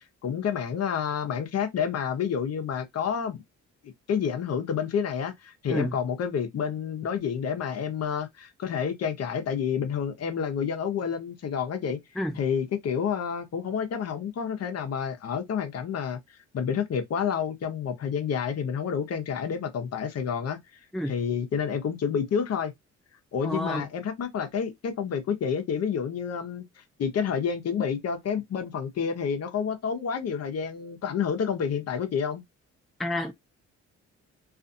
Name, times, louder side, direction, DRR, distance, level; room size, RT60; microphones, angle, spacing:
voice 1, 0.2-3.4 4.1-12.0 12.3-16.2 16.5-20.6 21.1-22.7 23.3-32.4, left 7 dB, 55° left, 0.8 m, -29 dB
voice 2, 23.4-23.8 33.0-33.3, left 1 dB, ahead, 0.4 m, -29 dB
2.5 x 2.4 x 2.6 m
cardioid pair, 90°, 30 cm